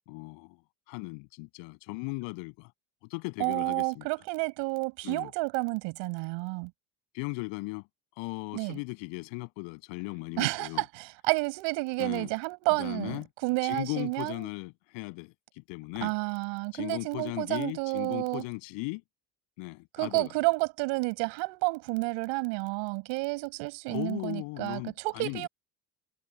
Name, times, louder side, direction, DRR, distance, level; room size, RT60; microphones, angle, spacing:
voice 1, 0.1-0.6 0.9-2.7 3.1-4.1 5.0-5.3 7.1-7.9 8.2-10.8 12.0-12.3 12.8-13.3 13.6-16.1 16.7-19.0 19.6-20.3 23.9-25.5, left 29 dB, 85° left, 7.7 m, -37 dB
voice 2, 3.4-6.7 8.5-8.8 10.4-14.5 16.0-18.4 19.9-25.5, right 27 dB, 85° right, 6.9 m, -30 dB
supercardioid pair, 85°, 43 cm